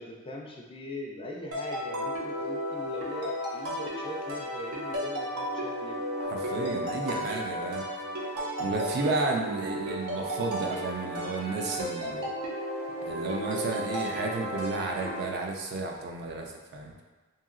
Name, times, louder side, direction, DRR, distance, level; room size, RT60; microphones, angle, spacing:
voice 1, 0.0-6.0, left 1 dB, 25° left, -1 dB, 0.3 m, -41 dB
sound 1, 1.5-15.2, equal, 80° right, 0.7 m, -34 dB
voice 2, 6.2-7.8 8.6-12.3 13.0-16.9, right 3 dB, 50° right, 1 dB, 0.4 m, -32 dB
2.9 x 2.7 x 2.5 m, 1.3 s
head